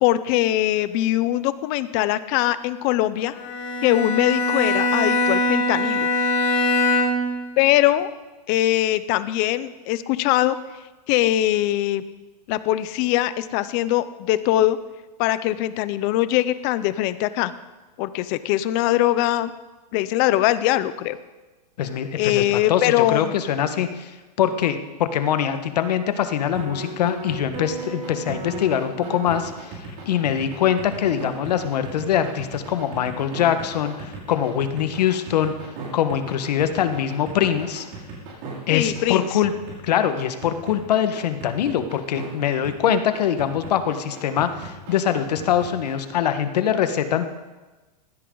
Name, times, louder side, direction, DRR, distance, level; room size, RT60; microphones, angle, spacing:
voice 1, 0.0-3.3 3.8-6.1 7.6-8.1 8.5-10.6 11.1-12.0 12.5-14.8 15.2-17.5 18.0-19.5 19.9-21.2 22.2-23.3 38.7-39.3, left 14 dB, 25° left, 14 dB, 0.5 m, -21 dB
Bowed string instrument, 3.3-7.4, left 2 dB, 45° left, 3.2 m, -22 dB
voice 2, 21.8-35.5 35.9-37.8 38.7-39.5 39.8-47.3, left 9 dB, 70° left, 9 dB, 1.4 m, -23 dB
sound 1, 26.5-42.3 42.6-46.1, right 3 dB, 35° right, 5.9 m, -36 dB
20.0 x 16.0 x 3.9 m, 1.2 s
supercardioid pair, 170°, 21 cm